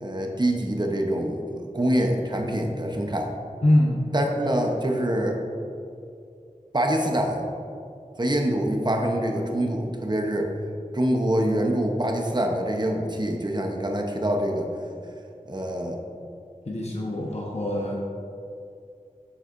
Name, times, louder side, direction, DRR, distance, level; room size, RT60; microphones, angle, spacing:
voice 1, 0.0-3.3 4.1-5.4 6.7-7.5 8.2-10.5 10.9-14.7 15.5-16.0, right 1 dB, 30° right, 2 dB, 0.8 m, -25 dB
voice 2, 3.6-4.0 16.7-18.0, left 1 dB, 50° left, -3 dB, 0.9 m, -23 dB
9.6 x 6.4 x 2.6 m, 2.5 s
wide cardioid pair, 45°, 14 cm